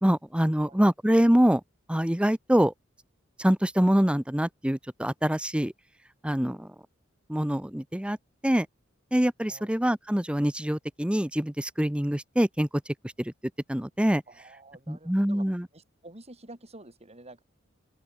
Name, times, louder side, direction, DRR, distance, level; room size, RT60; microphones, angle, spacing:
voice 1, 0.0-1.6 1.9-2.7 3.4-5.7 6.2-6.7 7.3-8.2 8.4-8.7 9.1-12.7 13.2-13.3 13.7-14.2 14.9-15.7, equal, 5° right, 0.8 m, -24 dB
voice 2, 14.3-15.5 15.7-17.4, right 2 dB, 30° right, 6.5 m, -49 dB
open air
head